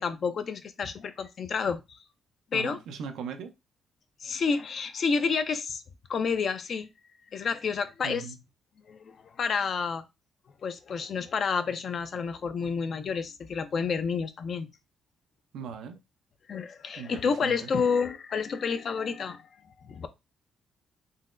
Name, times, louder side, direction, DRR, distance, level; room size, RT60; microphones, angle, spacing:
voice 1, 0.0-2.0 2.5-2.8 4.2-5.8 6.1-6.9 7.3-8.2 8.9-10.0 10.6-14.7 16.5-20.1, left 5 dB, 55° left, 0.4 m, -30 dB
voice 2, 2.5-3.5 8.0-8.4 15.5-16.0 17.0-17.7, right 6 dB, 85° right, 0.5 m, -39 dB
3.8 x 2.1 x 2.5 m
cardioid pair, 90°, 0 cm